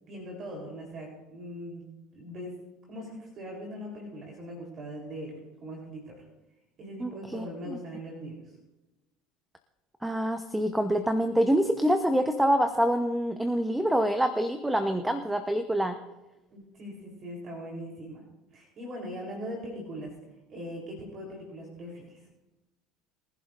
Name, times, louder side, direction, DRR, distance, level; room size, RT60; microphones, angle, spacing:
voice 1, 0.1-1.9 2.1-2.5 2.9-6.2 6.8-8.3 16.5-18.2 18.5-20.1 20.5-22.2, equal, 45° right, -1 dB, 3.8 m, -40 dB
voice 2, 7.0-7.8 10.0-16.0, equal, 5° right, 8 dB, 1.0 m, -26 dB
23.5 x 11.0 x 2.6 m, 1.0 s
hypercardioid pair, 75°, 0 cm